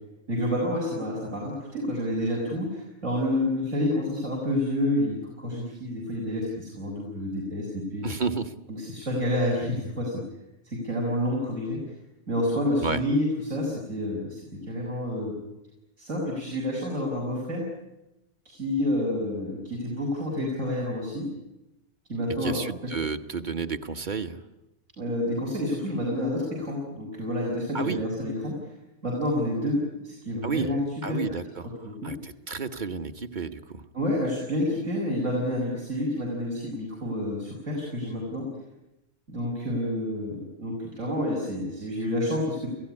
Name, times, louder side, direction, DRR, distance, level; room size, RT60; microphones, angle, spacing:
voice 1, 0.3-8.1 8.8-10.1 10.6-11.8 12.3-14.4 14.7-15.4 16.0-17.6 18.4-21.3 22.1-22.5 25.0-28.5 29.0-30.8 31.1-31.2 31.8-32.1 33.9-38.5 39.3-42.7, left 1 dB, 80° right, -3 dB, 6.2 m, -29 dB
voice 2, 8.0-8.5 12.8-13.0 22.4-24.4 27.7-28.0 30.4-30.7 31.0-31.7 32.0-33.8, right 5 dB, 40° right, 8 dB, 1.4 m, -31 dB
29.5 x 16.5 x 9.8 m, 0.93 s
omnidirectional pair, 1.3 m